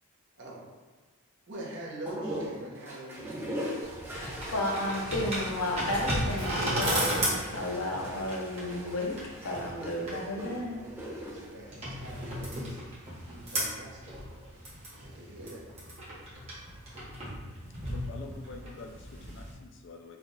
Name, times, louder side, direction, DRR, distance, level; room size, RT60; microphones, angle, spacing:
voice 1, 0.4-0.8 1.5-3.4 10.7-12.8 13.3-14.4 14.9-15.7, right 1 dB, 55° right, -4 dB, 0.9 m, -44 dB
sound 1, 2.0-12.7 13.9-14.5, equal, 10° right, 0.5 m, -40 dB
sound 2, 3.8-19.5, right 1 dB, 30° right, 0.9 m, -36 dB
voice 2, 4.1-10.9, left 1 dB, 85° left, 0 dB, 0.7 m, -33 dB
voice 3, 17.8-20.2, left 4 dB, 55° left, 3 dB, 0.4 m, -47 dB
3.3 x 2.3 x 3.9 m, 1.3 s
head